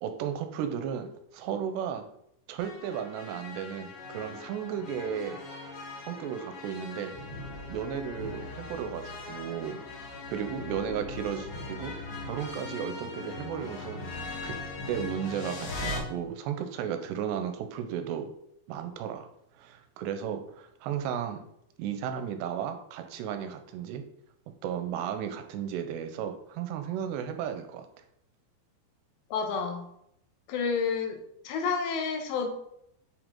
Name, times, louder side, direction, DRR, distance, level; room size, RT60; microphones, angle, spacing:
voice 1, 0.0-2.1 2.5-5.4 6.0-7.1 7.7-9.8 10.3-11.9 12.3-14.0 14.4-14.6 14.8-18.3 18.7-19.3 19.6-21.4 21.8-24.0 24.6-27.9, right 8 dB, 85° right, 7 dB, 2.8 m, -34 dB
sound 1, 2.6-16.0, left 3 dB, 60° left, 3.4 m, -40 dB
voice 2, 29.3-29.8 30.5-31.2 31.4-32.5, left 5 dB, 80° left, 4 dB, 3.1 m, -29 dB
7.7 x 5.0 x 3.7 m, 0.75 s
omnidirectional pair, 5.0 m